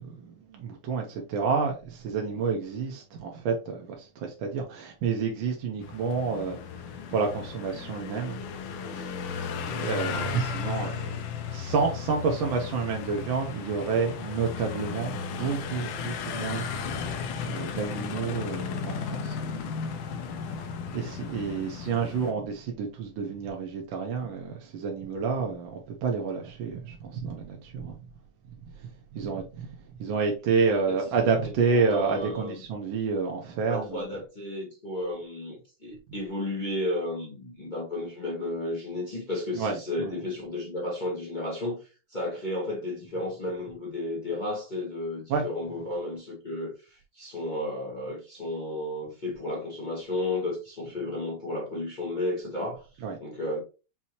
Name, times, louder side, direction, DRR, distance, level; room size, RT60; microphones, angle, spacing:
voice 1, 0.0-6.6 7.1-8.4 9.5-11.2 11.5-16.7 17.5-19.4 20.9-28.0 29.1-29.7 30.0-34.0 39.6-39.8 40.0-40.1 45.3-45.4 53.0-53.2, right 5 dB, 75° right, 1.5 m, -29 dB
sound 1, 5.8-22.3, left 6 dB, 75° left, 1.3 m, -35 dB
voice 2, 30.7-32.6 33.6-52.9 53.2-53.6, left 1 dB, 30° left, 1.1 m, -33 dB
5.6 x 2.7 x 3.0 m
omnidirectional pair, 2.3 m